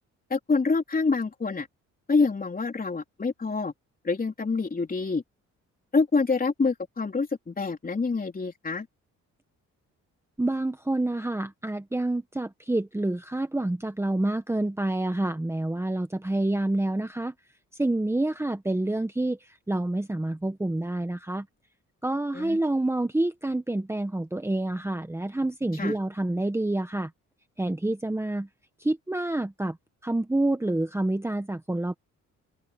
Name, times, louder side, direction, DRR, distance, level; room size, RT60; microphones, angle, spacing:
voice 1, 0.3-1.7 2.1-3.7 4.0-5.2 5.9-8.9 22.3-22.6 25.8-26.0, left 4 dB, 30° left, 4.1 m, -26 dB
voice 2, 10.4-17.3 17.8-21.5 22.0-27.1 27.6-28.5 28.8-29.8 30.0-32.0, right 1 dB, 10° right, 1.4 m, -28 dB
open air
cardioid pair, 90°, 30 cm